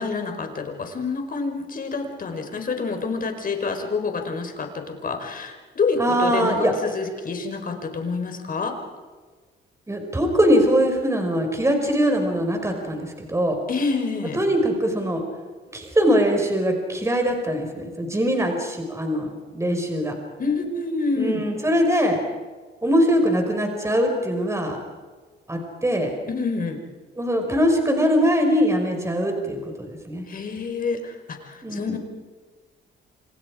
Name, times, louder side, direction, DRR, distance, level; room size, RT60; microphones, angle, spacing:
voice 1, 0.0-8.8 13.7-14.4 20.4-21.4 26.3-26.8 30.3-32.0, left 4 dB, 45° left, 5 dB, 4.8 m, -27 dB
voice 2, 6.0-6.7 9.9-13.6 14.3-15.2 15.7-20.1 21.2-22.2 22.8-24.8 25.5-26.1 27.2-30.3 31.6-32.0, equal, 15° right, 3 dB, 5.4 m, -22 dB
29.5 x 27.0 x 5.1 m, 1.4 s
cardioid pair, 90°, 20 cm